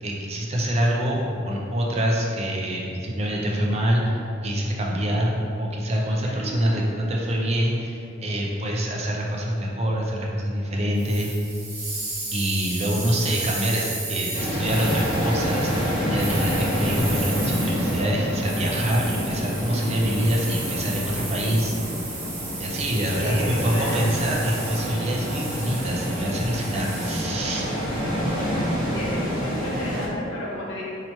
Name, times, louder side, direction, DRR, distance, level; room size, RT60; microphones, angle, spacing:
voice 1, 0.0-11.3 12.3-21.7 22.6-27.7, equal, 30° right, -2 dB, 0.4 m, -25 dB
voice 2, 6.2-6.7 23.2-24.0 28.9-30.8, left 1 dB, 70° left, -5 dB, 0.9 m, -33 dB
sound 1, 11.0-27.2, right 2 dB, 45° right, 1.2 m, -34 dB
sound 2, 14.3-30.1, equal, 5° right, 1.1 m, -28 dB
2.9 x 2.8 x 4.4 m, 2.6 s
head